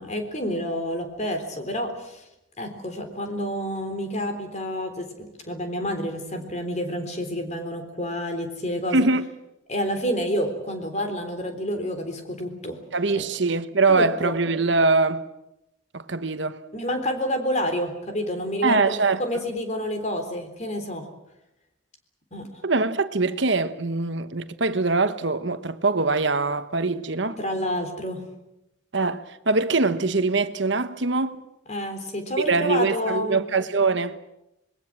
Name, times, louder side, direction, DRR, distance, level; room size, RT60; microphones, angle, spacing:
voice 1, 0.0-2.2 2.6-9.0 9.7-12.8 13.2-13.3 13.9-14.3 16.7-18.9 19.2-21.0 22.3-22.6 27.4-28.2 31.7-33.4, equal, 35° left, 3.7 m, -29 dB
voice 2, 8.9-9.2 12.9-15.3 15.9-16.6 18.6-19.2 22.6-27.4 28.9-31.4 32.5-34.2, right 3 dB, 60° right, 1.3 m, -23 dB
26.0 x 21.0 x 7.5 m
head